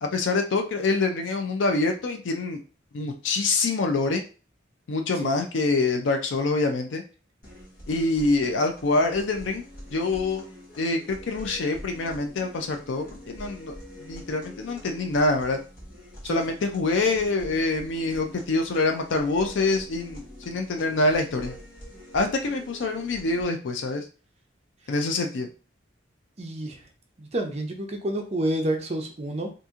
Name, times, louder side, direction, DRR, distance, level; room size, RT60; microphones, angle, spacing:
voice 1, 0.0-2.6 2.9-4.2 4.9-7.0 7.9-9.6 9.9-10.4 10.8-11.0 11.3-13.7 14.0-15.6 16.2-21.6 22.1-24.0 24.9-25.5, left 3 dB, 75° left, 4 dB, 0.5 m, -25 dB
sound 1, 7.4-23.4, equal, 50° left, 1.1 m, -45 dB
voice 2, 26.4-26.8 27.2-29.5, right 1 dB, 35° right, 3 dB, 0.6 m, -29 dB
2.8 x 2.6 x 3.6 m, 0.35 s
head